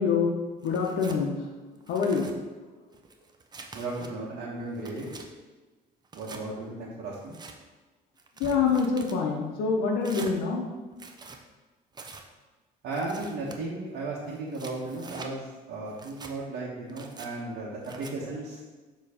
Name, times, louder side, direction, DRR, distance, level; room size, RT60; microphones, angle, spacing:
voice 1, 0.0-1.6 1.9-2.4 8.4-10.7, left 5 dB, 85° left, 0 dB, 0.8 m, -26 dB
Tearing, 0.6-1.2 1.8-2.4 2.9-4.1 4.6-5.3 6.0-6.4 7.1-7.6 8.2-9.2 10.0-10.4 10.9-11.4 11.9-12.2 12.9-13.6 14.3-15.3 15.9-16.3 16.9-17.3 17.8-18.1, right 4 dB, 25° right, 0.6 m, -45 dB
voice 2, 3.7-5.1 6.1-7.4 12.8-18.6, right 2 dB, 75° right, -6 dB, 1.2 m, -35 dB
6.8 x 3.1 x 5.0 m, 1.3 s
cardioid pair, 110°, 17 cm